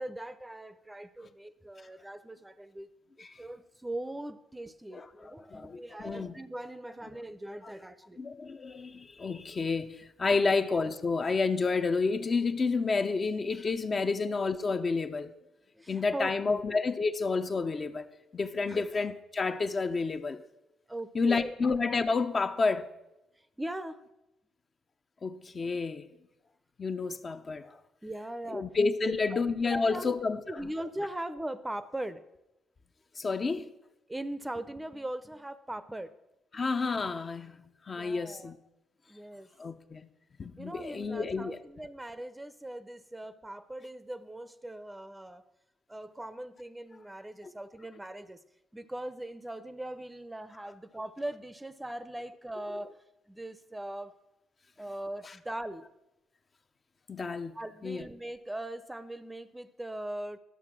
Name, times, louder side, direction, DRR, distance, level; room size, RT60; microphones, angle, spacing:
voice 1, 0.0-2.9 3.2-8.2 10.3-10.6 14.0-14.1 15.8-16.6 18.7-18.8 20.9-21.6 23.6-24.0 28.0-28.7 29.0-29.4 29.7-30.2 30.5-32.2 33.2-33.6 34.1-36.1 36.5-36.6 37.9-38.5 39.1-39.5 40.6-45.5 45.9-48.4 48.7-52.9 53.3-54.1 54.8-55.9 57.5-60.4, right 1 dB, 10° right, 0.6 m, -40 dB
voice 2, 4.9-6.3 8.2-15.3 15.9-18.1 18.3-20.4 21.1-22.9 25.2-26.1 26.8-27.8 28.5-30.4 33.2-33.7 36.5-37.6 37.9-38.6 39.6-40.1 40.4-41.6 47.4-47.5 57.1-57.6 57.8-58.0, left 4 dB, 35° left, 0.7 m, -30 dB
11.5 x 6.6 x 6.1 m
cardioid pair, 90°, 0 cm